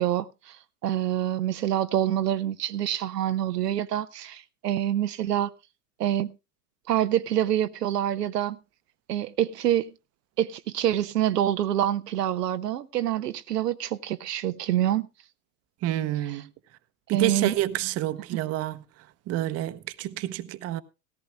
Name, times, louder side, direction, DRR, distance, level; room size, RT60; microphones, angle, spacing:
voice 1, 0.0-5.5 6.0-6.3 6.9-8.6 9.1-9.9 10.4-15.1 17.1-17.5, right 11 dB, 75° right, 0.7 m, -26 dB
voice 2, 15.8-16.5 17.1-18.8 19.3-20.8, right 14 dB, 30° right, 0.8 m, -28 dB
17.5 x 14.5 x 2.2 m
figure-of-eight pair, 90°, 48 cm